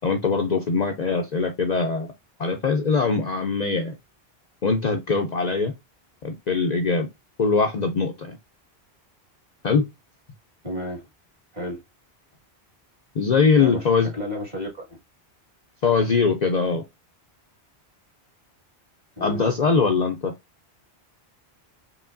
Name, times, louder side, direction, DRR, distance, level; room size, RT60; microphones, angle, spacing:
voice 1, 0.0-2.1 2.4-3.9 4.6-5.7 6.2-7.1 7.4-8.4 9.6-9.9 13.2-14.1 15.8-16.8 19.2-20.3, left 4 dB, 50° left, 0.6 m, -22 dB
voice 2, 10.6-11.0 11.5-11.8 13.6-14.8 19.2-19.4, left 1 dB, 40° right, 2.0 m, -32 dB
4.9 x 3.0 x 2.5 m
omnidirectional pair, 1.1 m